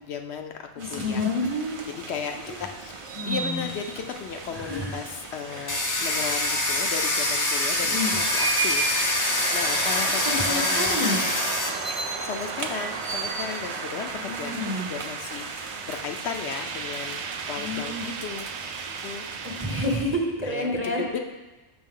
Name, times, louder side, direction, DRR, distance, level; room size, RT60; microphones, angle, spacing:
voice 1, 0.0-0.5 0.9-1.2 2.1-2.4 2.8-11.3 12.2-17.2 17.5-18.6 19.0-19.3 20.4-21.2, left 6 dB, 70° left, 5 dB, 0.8 m, -35 dB
voice 2, 0.8-1.8 2.5-2.6 3.2-3.6 4.5-4.9 5.5-5.7 7.8-8.1 10.1-11.2 14.1-14.9 17.6-18.0 19.4-21.2, left 1 dB, 15° right, 0 dB, 0.7 m, -29 dB
sound 1, 0.8-20.1, right 3 dB, 45° right, 0.4 m, -36 dB
Domestic sounds home sounds, 5.7-11.7, left 1 dB, 25° left, 0.5 m, -25 dB
sound 2, 8.0-19.9, right 6 dB, 75° right, 0.9 m, -36 dB
6.1 x 6.1 x 3.7 m, 1.1 s
omnidirectional pair, 1.2 m